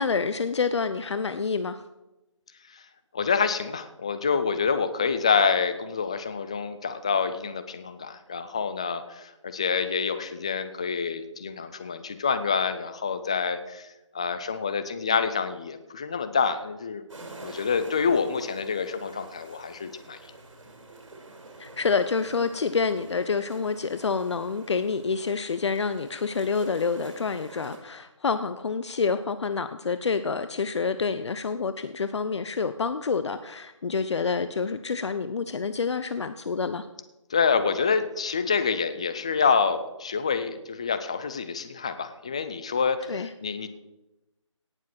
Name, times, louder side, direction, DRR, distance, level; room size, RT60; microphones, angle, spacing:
voice 1, 0.0-1.8 21.6-36.9 43.1-43.3, left 5 dB, 60° left, 11 dB, 0.7 m, -28 dB
voice 2, 3.1-17.0 17.4-20.2 37.3-43.7, left 5 dB, 10° left, 10 dB, 0.3 m, -27 dB
sound 1, 17.1-27.8, right 2 dB, 75° right, 4.9 m, -47 dB
17.5 x 7.3 x 5.9 m, 1.0 s
figure-of-eight pair, 160°, 16 cm